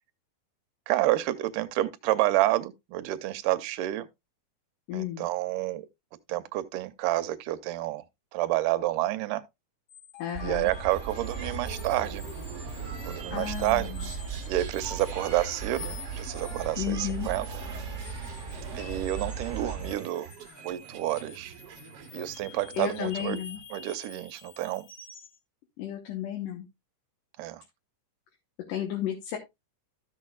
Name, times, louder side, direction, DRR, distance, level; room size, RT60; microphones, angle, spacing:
voice 1, 0.9-4.1 4.9-5.9 6.3-8.0 8.3-9.4 10.4-12.3 13.0-13.9 14.5-17.5 18.1-18.2 18.7-20.3 20.6-21.5 22.1-23.4 23.7-24.9 27.4-27.6, right 15 dB, 80° right, 2.2 m, -29 dB
voice 2, 4.9-5.3 10.2-10.7 13.3-14.0 16.8-17.3 22.7-23.6 25.8-26.7 28.7-29.4, left 11 dB, 80° left, 2.7 m, -33 dB
sound 1, 9.9-25.4, left 4 dB, 50° left, 3.2 m, -48 dB
sound 2, 10.3-19.9, right 5 dB, 35° right, 1.1 m, -37 dB
sound 3, 10.9-23.6, right 7 dB, 60° right, 1.6 m, -48 dB
14.0 x 6.4 x 2.3 m
omnidirectional pair, 3.8 m